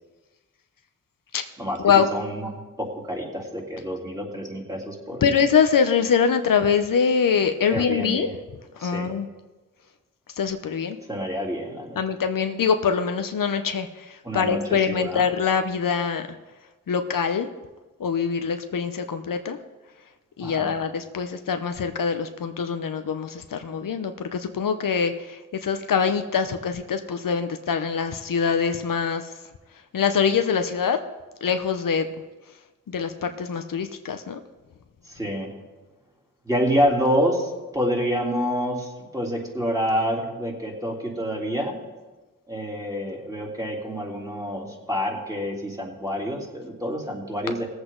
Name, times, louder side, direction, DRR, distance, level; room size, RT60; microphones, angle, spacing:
voice 1, 1.6-2.5 2.8-5.2 7.7-8.3 8.8-9.1 11.1-12.0 14.2-14.6 14.9-15.2 20.4-20.7 35.1-35.5 36.5-41.8 42.5-47.7, equal, 10° right, -3 dB, 3.4 m, -27 dB
voice 2, 5.2-8.3 8.7-9.3 10.3-11.0 11.9-16.3 16.9-17.5 18.0-19.6 20.4-29.3 29.9-31.0 31.4-32.1 32.9-34.4, left 6 dB, 75° left, 8 dB, 0.8 m, -24 dB
18.0 x 8.0 x 3.9 m, 1.2 s
cardioid pair, 40°, 34 cm